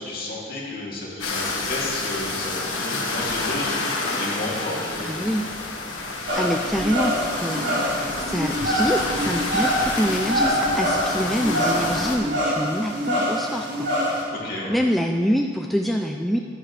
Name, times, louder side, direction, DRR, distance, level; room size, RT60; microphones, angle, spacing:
voice 1, 0.1-5.3 14.3-14.7, left 2 dB, 50° left, -5 dB, 2.7 m, -32 dB
sound 1, 1.2-12.2, left 3 dB, 90° left, 1.6 m, -29 dB
voice 2, 5.0-5.5 6.3-13.9 14.7-16.4, equal, ahead, 1 dB, 0.3 m, -25 dB
sound 2, 6.3-14.2, equal, 65° right, 2.8 m, -25 dB
12.0 x 11.0 x 3.3 m, 2.4 s
head